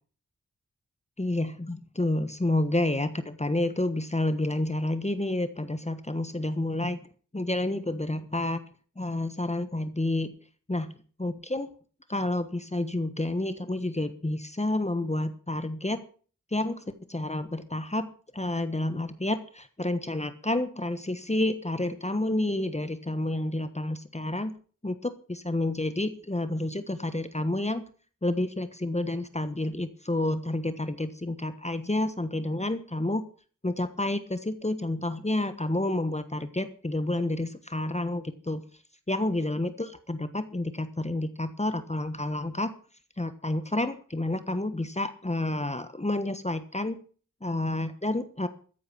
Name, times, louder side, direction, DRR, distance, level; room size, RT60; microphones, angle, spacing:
voice 1, 1.2-7.0 7.3-8.6 9.0-10.3 10.7-11.7 12.1-16.0 16.5-18.1 18.3-24.5 24.8-27.8 28.2-33.2 33.6-38.6 39.1-42.7 43.2-47.0 47.4-48.5, left 1 dB, 20° left, 11 dB, 1.3 m, -29 dB
14.0 x 9.4 x 6.1 m, 0.41 s
wide cardioid pair, 65°, 31 cm